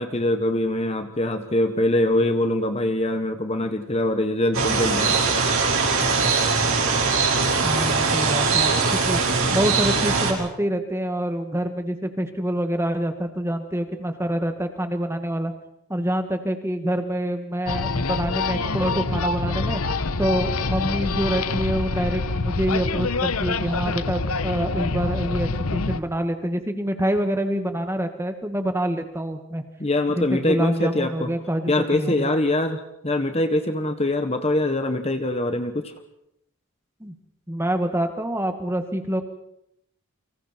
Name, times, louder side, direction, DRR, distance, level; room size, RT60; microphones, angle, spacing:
voice 1, 0.0-5.2 29.8-31.3 31.7-35.9, left 1 dB, 30° left, 8 dB, 1.4 m, -23 dB
sound 1, 4.5-10.3, right 4 dB, 65° right, 5.1 m, -21 dB
voice 2, 7.6-9.2 9.5-15.5 15.9-19.8 20.2-29.6 30.1-32.3 37.0-37.1 37.5-39.2, right 1 dB, 10° right, 6 dB, 2.0 m, -26 dB
sound 2, 17.7-26.0, left 3 dB, 80° left, 1.0 m, -26 dB
30.0 x 24.5 x 4.6 m, 0.79 s
head